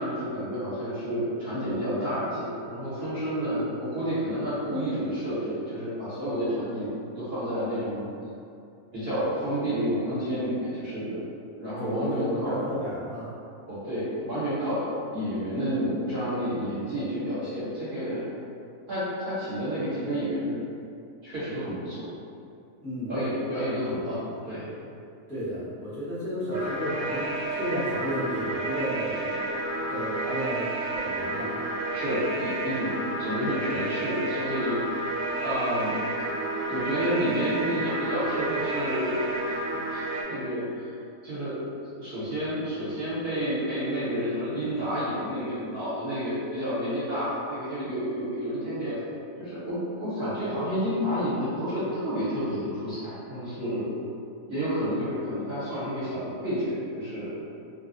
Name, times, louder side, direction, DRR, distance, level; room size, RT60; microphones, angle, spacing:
voice 1, 0.0-8.0 8.9-11.2 11.6-12.6 13.7-14.9 15.1-18.2 18.9-20.5 21.2-22.1 23.1-24.7 31.9-35.1 35.4-36.0 36.7-39.3 39.9-40.9 41.2-41.6 42.0-49.0 49.4-53.9 54.5-57.3, equal, 45° right, -13 dB, 1.2 m, -30 dB
voice 2, 11.8-13.3 22.8-23.2 25.3-29.4 29.9-30.7 31.0-31.6, equal, ahead, -14 dB, 0.8 m, -32 dB
sound 1, 26.5-40.2, right 2 dB, 75° right, 1.0 m, -31 dB
3.0 x 2.3 x 2.5 m, 2.5 s
omnidirectional pair, 1.5 m